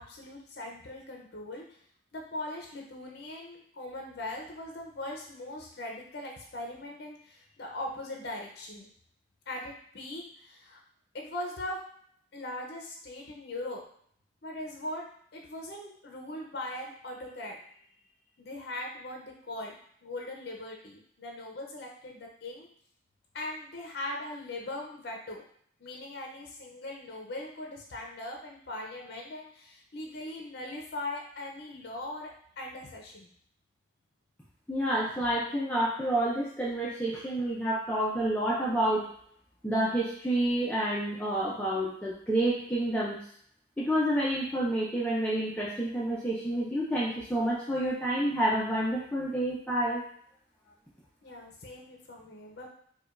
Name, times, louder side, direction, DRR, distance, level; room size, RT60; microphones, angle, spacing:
voice 1, 0.0-1.8 2.1-8.9 9.5-10.8 11.1-11.8 12.3-13.8 14.4-17.6 18.4-19.7 20.0-22.7 23.3-25.4 25.8-32.3 32.6-33.3 51.2-52.7, left 1 dB, 55° left, 0 dB, 0.6 m, -40 dB
voice 2, 34.7-39.1 39.6-43.2 43.8-50.0, right 1 dB, 5° left, -6 dB, 0.4 m, -29 dB
4.7 x 2.2 x 2.5 m, 0.62 s
head